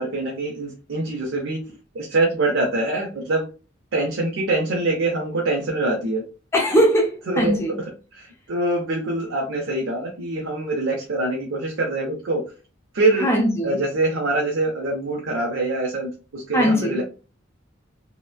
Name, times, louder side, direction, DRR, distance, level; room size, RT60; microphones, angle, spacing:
voice 1, 0.0-1.6 1.9-3.5 3.9-6.2 7.3-7.9 8.1-12.4 12.9-13.3 13.6-17.0, right 2 dB, 70° right, 0.6 m, -24 dB
voice 2, 6.5-7.8 13.2-13.8 16.5-17.0, equal, 15° left, 0.5 m, -20 dB
2.9 x 2.1 x 2.3 m
head